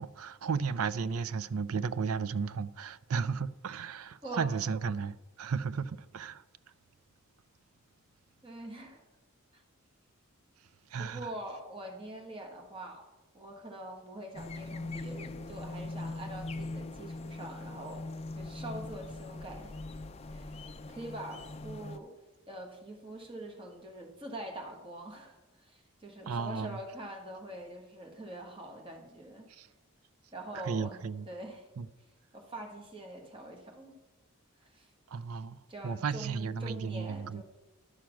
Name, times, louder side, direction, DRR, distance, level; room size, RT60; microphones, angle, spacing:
voice 1, 0.0-6.4 10.9-11.3 26.3-26.8 29.5-29.7 30.6-31.3 31.8-31.9 35.1-35.6 35.8-37.4, right 5 dB, 80° right, 0.5 m, -34 dB
voice 2, 4.2-4.6 8.4-9.0 9.5-9.6 11.0-13.0 13.3-18.0 18.4-19.7 20.3-22.1 22.5-29.5 30.3-31.7 32.3-33.9 34.6-34.9 35.7-37.4, right 1 dB, 25° right, 1.5 m, -44 dB
sound 1, 14.3-22.0, left 2 dB, 30° left, 0.4 m, -41 dB
11.5 x 6.3 x 5.8 m
head